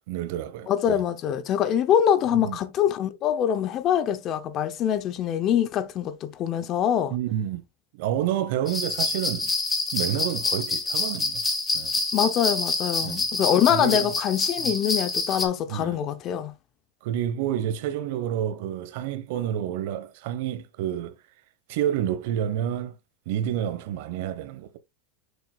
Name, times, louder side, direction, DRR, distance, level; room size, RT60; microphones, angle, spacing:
voice 1, 0.1-1.0 2.3-2.6 7.1-7.6 7.9-9.5 9.9-11.4 11.7-12.0 13.0-13.3 13.7-14.1 14.6-14.7 15.7-16.0 17.0-21.1 21.7-23.0 23.3-24.8, right 10 dB, 60° right, 1.1 m, -29 dB
voice 2, 0.7-7.1 12.1-16.5, left 9 dB, 35° left, 0.6 m, -24 dB
sound 1, 8.7-15.5, left 3 dB, 10° left, 1.5 m, -27 dB
6.8 x 6.7 x 2.3 m
supercardioid pair, 150°, 0 cm